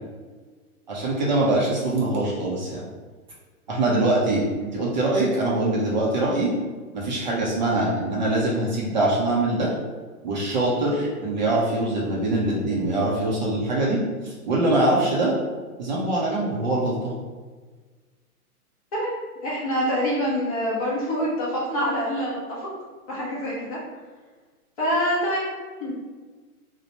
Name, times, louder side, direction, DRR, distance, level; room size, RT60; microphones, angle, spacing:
voice 1, 0.9-2.8 3.7-6.5 6.9-9.7 10.2-14.0 14.2-15.3 15.8-17.1, right 2 dB, 30° right, -4 dB, 0.5 m, -23 dB
voice 2, 19.4-22.7 23.1-23.8 24.8-25.4 25.8-25.9, equal, 25° left, -5 dB, 0.5 m, -25 dB
3.0 x 2.0 x 2.8 m, 1.4 s
figure-of-eight pair, 120°, 45 cm